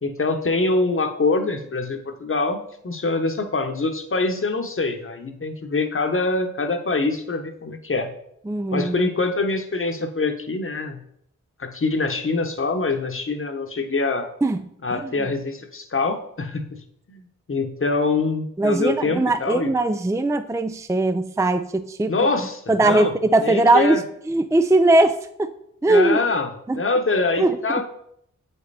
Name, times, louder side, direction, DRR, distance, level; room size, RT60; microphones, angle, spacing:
voice 1, 0.0-8.1 8.7-11.0 11.6-14.3 14.8-16.8 17.1-19.7 22.1-23.1 23.4-24.0 25.9-27.9, left 3 dB, 40° left, 6 dB, 1.1 m, -24 dB
voice 2, 8.5-9.1 14.4-14.6 14.9-15.0 18.6-22.1 22.7-24.0 24.3-25.5 25.8-26.2 26.7-26.8 27.4-27.6, right 2 dB, 10° right, 10 dB, 0.4 m, -19 dB
7.8 x 5.5 x 4.2 m, 0.71 s
cardioid pair, 45°, 32 cm